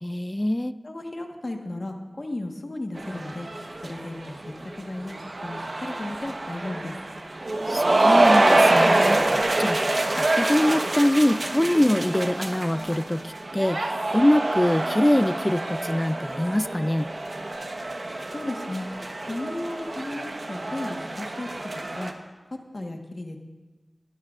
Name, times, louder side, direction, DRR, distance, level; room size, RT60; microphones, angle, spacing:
voice 1, 0.0-0.7 7.7-9.2 9.6-17.1, left 1 dB, 20° left, 13 dB, 0.4 m, -24 dB
voice 2, 0.8-3.5 3.8-5.2 5.4-6.9 18.3-18.8 19.2-21.5 21.9-22.1 22.7-23.4, left 2 dB, 55° left, 3 dB, 1.3 m, -34 dB
sound 1, 3.0-22.1, right 2 dB, 65° right, 1.0 m, -25 dB
21.5 x 11.5 x 2.5 m, 1.3 s
wide cardioid pair, 55°, 0 cm